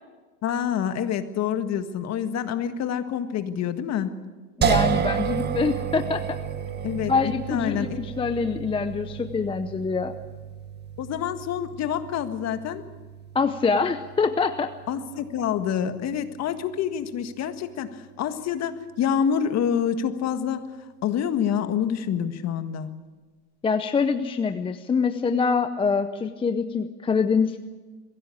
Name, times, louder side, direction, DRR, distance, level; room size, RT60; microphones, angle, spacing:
voice 1, 0.4-4.1 6.8-7.9 11.0-12.8 14.9-20.6 21.0-22.9, left 8 dB, 35° left, 9 dB, 1.7 m, -27 dB
voice 2, 4.6-6.2 7.1-10.1 13.3-14.7 23.6-27.6, left 5 dB, 10° left, 9 dB, 0.7 m, -25 dB
sound 1, 4.6-17.7, right 7 dB, 25° right, 1.5 m, -32 dB
23.0 x 16.0 x 8.6 m, 1.3 s
supercardioid pair, 125°, 44 cm